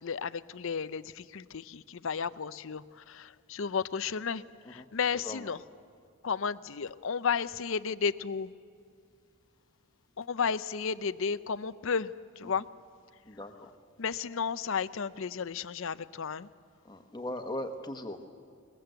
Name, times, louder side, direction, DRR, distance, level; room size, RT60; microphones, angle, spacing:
voice 1, 0.0-4.4 4.7-5.6 6.2-8.5 10.2-12.7 14.0-16.5, left 6 dB, 60° left, 16 dB, 0.5 m, -33 dB
voice 2, 13.2-13.7 16.8-18.3, left 1 dB, 20° left, 7 dB, 1.2 m, -39 dB
22.0 x 20.0 x 8.0 m, 2.3 s
head